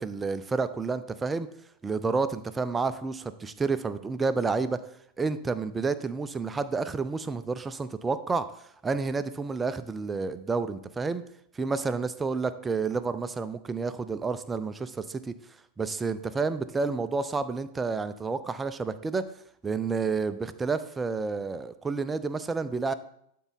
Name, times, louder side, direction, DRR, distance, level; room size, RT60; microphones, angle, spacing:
voice 1, 0.0-1.5 1.8-4.8 5.2-8.5 8.8-11.2 11.5-15.3 15.8-19.3 19.6-22.9, right 4 dB, 15° right, 12 dB, 0.5 m, -30 dB
12.0 x 4.6 x 4.0 m, 0.72 s
figure-of-eight pair, 90°, 0 cm